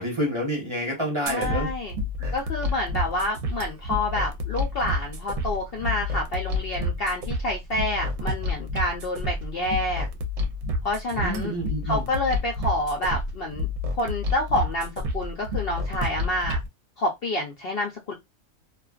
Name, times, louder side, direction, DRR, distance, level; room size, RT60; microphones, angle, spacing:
voice 1, 0.0-1.7 2.2-2.3 11.2-12.1, equal, 25° right, 0.9 m, -28 dB
voice 2, 1.3-1.9 2.3-10.1 10.8-11.5 11.9-13.7 14.0-16.6 17.0-18.1, left 1 dB, 60° left, 0.6 m, -28 dB
sound 1, 1.3-16.7, left 2 dB, 65° right, 0.8 m, -29 dB
2.4 x 2.3 x 2.3 m
omnidirectional pair, 1.4 m